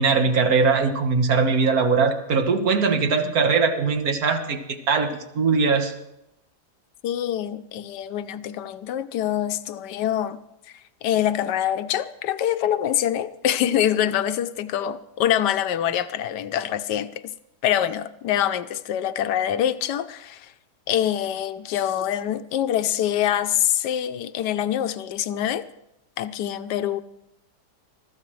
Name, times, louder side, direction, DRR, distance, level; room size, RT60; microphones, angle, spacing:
voice 1, 0.0-5.9, right 5 dB, 60° right, 1.8 m, -21 dB
voice 2, 7.0-10.4 11.0-17.3 17.6-20.5 20.9-25.7 26.2-27.0, left 11 dB, 90° left, 1.3 m, -25 dB
20.5 x 14.5 x 3.2 m
omnidirectional pair, 1.8 m